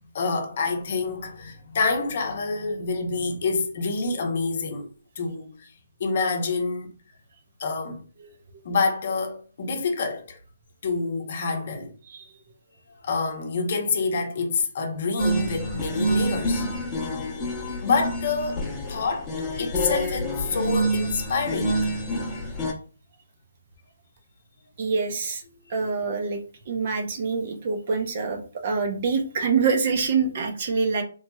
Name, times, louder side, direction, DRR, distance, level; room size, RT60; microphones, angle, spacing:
voice 1, 0.1-4.9 5.2-5.7 6.0-6.9 7.6-8.0 8.6-10.4 10.8-11.9 13.0-16.7 17.8-21.8 25.8-25.9, left 4 dB, 45° left, 0.7 m, -27 dB
sound 1, 15.2-22.7, equal, 5° left, 0.9 m, -27 dB
voice 2, 24.8-25.4 25.7-26.4 26.7-31.0, right 5 dB, 40° right, 0.6 m, -25 dB
3.0 x 2.9 x 2.3 m
hypercardioid pair, 165°, 0 cm